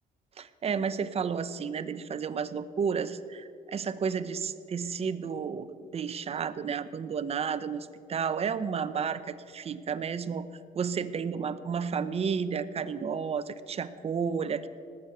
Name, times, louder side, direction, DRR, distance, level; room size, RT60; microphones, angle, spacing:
voice 1, 0.4-10.5 10.7-14.7, right 6 dB, 35° right, 13 dB, 0.8 m, -32 dB
18.5 x 8.3 x 8.0 m, 2.4 s
cardioid pair, 110°, 17 cm